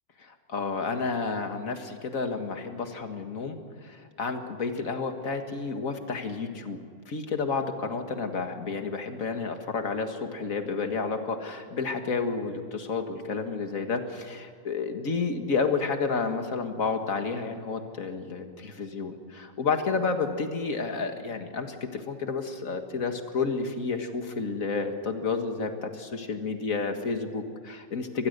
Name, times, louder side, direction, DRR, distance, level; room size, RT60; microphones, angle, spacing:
voice 1, 0.2-6.8 7.1-28.3, left 4 dB, 50° left, 6 dB, 2.1 m, -31 dB
24.0 x 20.0 x 6.7 m, 2.2 s
omnidirectional pair, 1.9 m